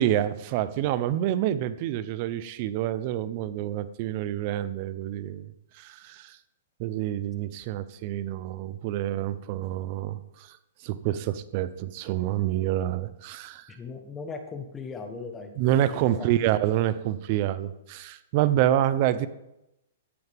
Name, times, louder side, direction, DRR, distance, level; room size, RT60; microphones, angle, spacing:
voice 1, 0.0-6.4 6.8-10.6 10.8-13.8 15.6-19.3, right 12 dB, 40° right, 14 dB, 0.7 m, -27 dB
voice 2, 13.7-16.3, left 4 dB, 15° left, 6 dB, 1.3 m, -39 dB
14.0 x 9.4 x 3.6 m, 0.88 s
hypercardioid pair, 150°, 0 cm